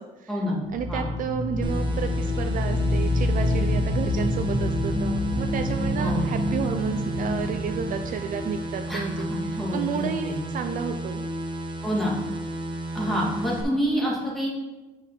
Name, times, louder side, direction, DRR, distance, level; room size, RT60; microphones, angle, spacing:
voice 1, 0.0-0.4 0.7-11.3, right 7 dB, 55° right, 7 dB, 0.4 m, -32 dB
sound 1, 0.6-9.3, left 1 dB, 45° left, 1.9 m, -27 dB
sound 2, 1.6-13.6, right 1 dB, 30° right, 1.2 m, -33 dB
voice 2, 9.3-10.3 11.8-12.1 12.9-14.5, equal, ahead, -4 dB, 2.1 m, -27 dB
5.6 x 4.7 x 5.8 m, 1.1 s
cardioid pair, 110°, 17 cm